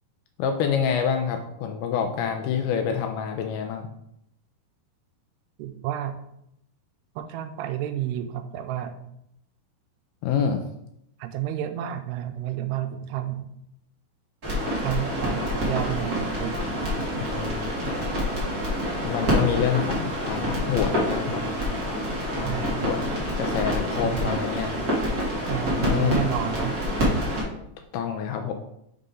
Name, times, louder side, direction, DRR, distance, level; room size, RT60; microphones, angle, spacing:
voice 1, 0.4-3.9 10.2-10.6 17.2-17.6 19.0-21.4 22.4-24.7 25.7-26.3 27.9-28.5, left 7 dB, 80° left, 4 dB, 2.3 m, -27 dB
voice 2, 5.6-6.2 7.2-9.0 11.2-13.4 14.7-16.6 17.0-17.4 22.4-22.9 24.0-24.3 25.4-26.8, right 11 dB, 85° right, 8 dB, 2.5 m, -31 dB
sound 1, 14.4-27.4, equal, 45° right, 1.2 m, -27 dB
6.6 x 5.3 x 3.7 m, 0.77 s
omnidirectional pair, 4.8 m